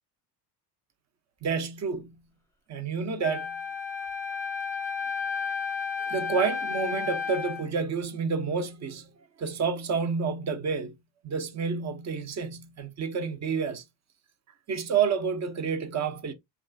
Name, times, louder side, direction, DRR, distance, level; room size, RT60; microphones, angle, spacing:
voice 1, 1.4-2.2 2.7-3.6 6.1-9.1 9.4-10.9 11.2-13.8 14.7-16.3, right 5 dB, 35° right, 0.7 m, -29 dB
Wind instrument woodwind instrument, 3.2-7.7, left 5 dB, 5° left, 0.7 m, -32 dB
2.9 x 2.4 x 2.5 m
supercardioid pair, 85°, 45 cm